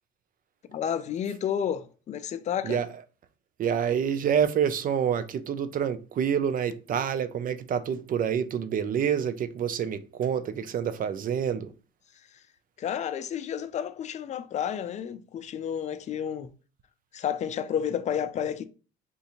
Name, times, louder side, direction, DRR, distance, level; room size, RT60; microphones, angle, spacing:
voice 1, 0.7-2.8 12.8-16.5 17.1-18.7, left 9 dB, 40° left, 0.4 m, -31 dB
voice 2, 3.6-11.7, right 8 dB, 45° right, 0.5 m, -27 dB
3.7 x 2.5 x 2.8 m
cardioid pair, 90°, 19 cm